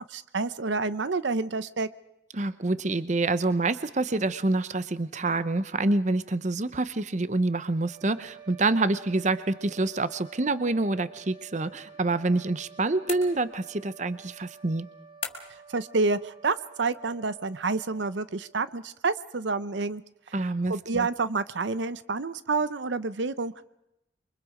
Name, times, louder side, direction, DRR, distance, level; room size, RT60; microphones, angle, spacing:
voice 1, 0.0-1.9 15.7-20.0 20.7-23.7, right 3 dB, 75° right, 14 dB, 0.8 m, -28 dB
voice 2, 2.3-14.9 20.3-21.1, right 2 dB, 40° right, 14 dB, 0.8 m, -27 dB
sound 1, 7.8-18.7, right 5 dB, 5° right, 6.1 m, -50 dB
sound 2, 13.1-13.8 15.2-15.7, left 6 dB, 30° left, 3.5 m, -38 dB
27.5 x 24.0 x 5.0 m, 0.85 s
head